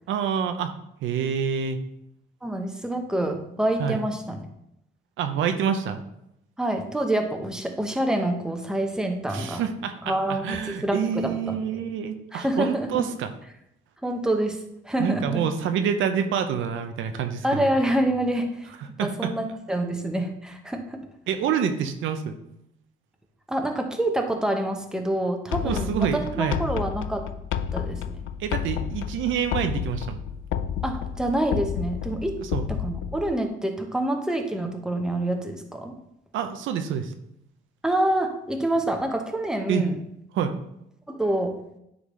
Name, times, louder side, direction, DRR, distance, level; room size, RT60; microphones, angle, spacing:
voice 1, 0.1-0.7 1.0-1.8 3.8-4.0 5.2-6.0 9.3-10.1 10.4-13.3 15.0-17.6 19.0-19.3 21.3-22.3 25.6-26.6 28.4-30.2 32.5-32.7 36.3-37.1 39.7-39.8 40.3-40.5, right 7 dB, 80° right, 7 dB, 0.7 m, -27 dB
voice 2, 2.4-4.5 6.6-9.6 10.0-11.6 12.3-13.1 14.0-15.4 17.4-18.7 19.0-21.0 23.5-27.3 27.7-28.2 30.8-32.4 32.7-35.9 37.8-40.0 41.1-41.6, right 1 dB, 5° right, 4 dB, 0.9 m, -27 dB
sound 1, 25.5-33.3, left 8 dB, 75° left, 0.4 m, -31 dB
9.5 x 3.9 x 3.2 m, 0.80 s
cardioid pair, 90°, 20 cm